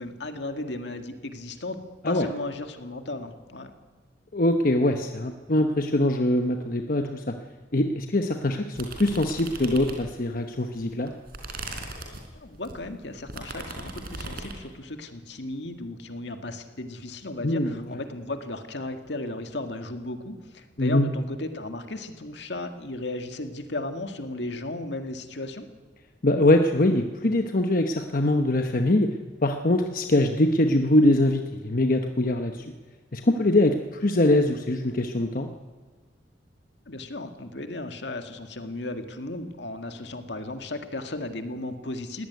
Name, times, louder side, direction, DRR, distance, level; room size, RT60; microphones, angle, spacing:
voice 1, 0.0-1.8 2.1-3.7 12.3-25.7 36.9-42.3, left 2 dB, 75° left, 6 dB, 2.0 m, -35 dB
voice 2, 4.3-7.3 7.7-11.1 17.4-18.0 20.8-21.1 26.2-29.1 29.4-32.6 33.1-35.5, left 1 dB, 50° left, 5 dB, 1.0 m, -23 dB
sound 1, 8.8-10.3 10.7-14.6, right 2 dB, 55° right, 4.1 m, -38 dB
21.0 x 17.5 x 9.5 m, 1.4 s
head